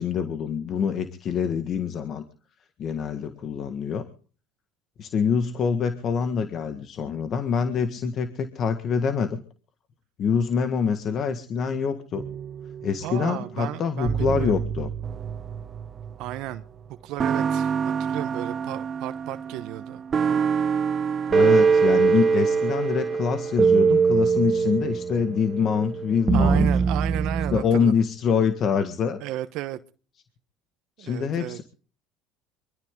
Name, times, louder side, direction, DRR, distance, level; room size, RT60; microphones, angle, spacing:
voice 1, 0.0-2.2 2.8-4.0 5.0-9.4 10.2-12.2 12.8-14.9 21.3-26.7 27.5-29.2 31.0-31.6, left 6 dB, 50° left, 1.7 m, -25 dB
sound 1, 12.2-13.4 14.1-16.6 17.2-27.6, right 5 dB, 35° right, 0.9 m, -24 dB
voice 2, 13.0-14.7 16.2-16.6 17.0-17.7 18.0-20.0 26.3-27.9 29.2-29.8 31.0-31.6, right 15 dB, 70° right, 1.0 m, -33 dB
24.5 x 13.5 x 3.8 m
supercardioid pair, 95°, 0 cm